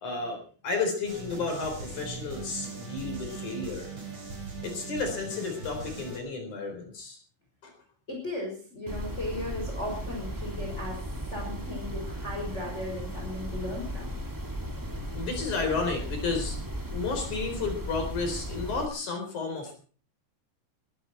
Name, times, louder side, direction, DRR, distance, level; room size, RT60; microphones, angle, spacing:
voice 1, 0.0-3.9 4.6-7.2 7.6-7.7 15.1-16.6 16.9-19.7, left 4 dB, 65° left, 4 dB, 5.4 m, -32 dB
sound 1, 1.0-6.2, right 4 dB, 40° right, 5.8 m, -40 dB
voice 2, 8.1-11.0 11.3-14.1, left 1 dB, 20° left, -1 dB, 5.4 m, -36 dB
sound 2, 8.9-18.9, equal, 10° right, 0.9 m, -36 dB
22.5 x 13.0 x 4.5 m, 0.41 s
omnidirectional pair, 3.8 m